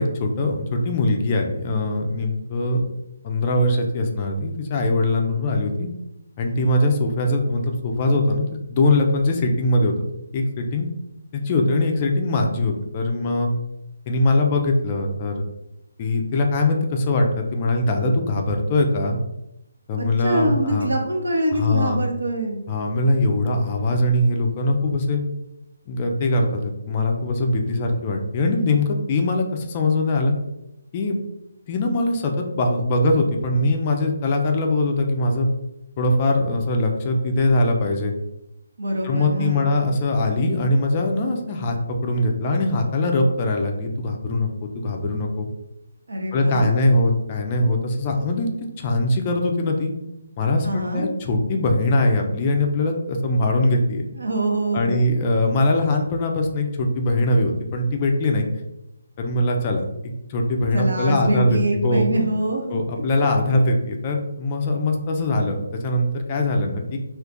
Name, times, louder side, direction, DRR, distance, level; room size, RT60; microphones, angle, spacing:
voice 1, 0.0-2.9 3.2-5.9 6.4-9.9 10.3-10.8 11.3-13.5 14.1-15.3 16.0-19.2 19.9-20.9 21.5-22.0 22.7-25.2 25.9-30.3 30.9-31.2 31.7-35.5 36.0-38.1 39.0-45.5 46.3-48.5 48.8-49.9 50.4-54.0 54.7-58.5 59.2-62.1 62.7-67.0, left 2 dB, 30° left, 2 dB, 0.4 m, -21 dB
voice 2, 20.0-22.6 38.8-39.7 46.1-46.8 50.6-51.1 54.1-55.0 60.7-62.7, right 1 dB, 70° right, 1 dB, 0.8 m, -24 dB
2.5 x 2.4 x 3.6 m, 0.89 s
figure-of-eight pair, 145°, 0 cm